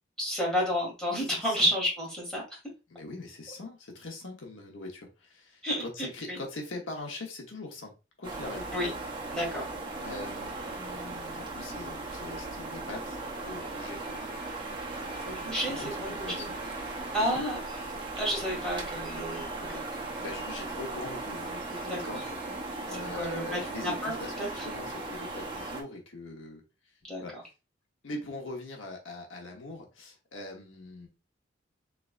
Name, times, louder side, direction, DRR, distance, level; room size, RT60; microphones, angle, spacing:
voice 1, 0.2-2.4 5.6-5.8 6.3-6.4 8.7-8.9 9.3-9.7 15.2-16.5 17.1-17.6 18.2-19.8 21.8-22.0 23.1-24.6 27.1-27.2, equal, 5° left, -4 dB, 1.9 m, -31 dB
voice 2, 1.2-1.7 2.9-7.9 8.2-8.7 10.0-13.2 13.5-14.0 15.3-16.6 17.2-17.4 20.2-26.6 27.2-27.3 28.0-31.1, left 2 dB, 85° left, 2 dB, 1.0 m, -42 dB
sound 1, 8.2-25.8, right 2 dB, 25° right, 0.7 m, -37 dB
3.7 x 3.3 x 2.4 m, 0.29 s
head